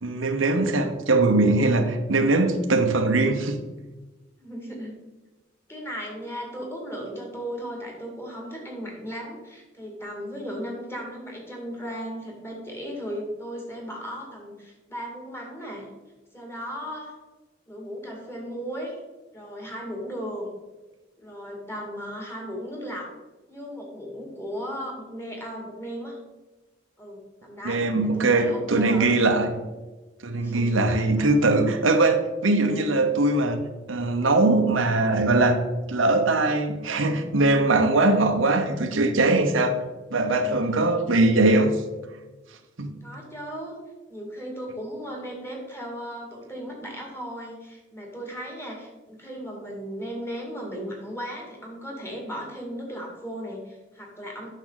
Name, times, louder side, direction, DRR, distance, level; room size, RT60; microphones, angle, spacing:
voice 1, 0.0-3.6 27.6-29.6 30.2-33.6 33.9-35.6 35.9-39.8 40.1-41.8 42.8-43.1, right 2 dB, 85° right, 6 dB, 1.0 m, -21 dB
voice 2, 1.4-1.8 4.4-4.9 5.7-15.9 16.3-17.1 17.7-19.0 19.3-20.5 21.2-23.1 23.5-26.2 27.0-29.1 30.4-31.3 38.9-39.2 43.0-43.8 44.1-54.5, equal, 15° left, -1 dB, 2.1 m, -36 dB
9.1 x 6.5 x 4.0 m, 1.2 s
head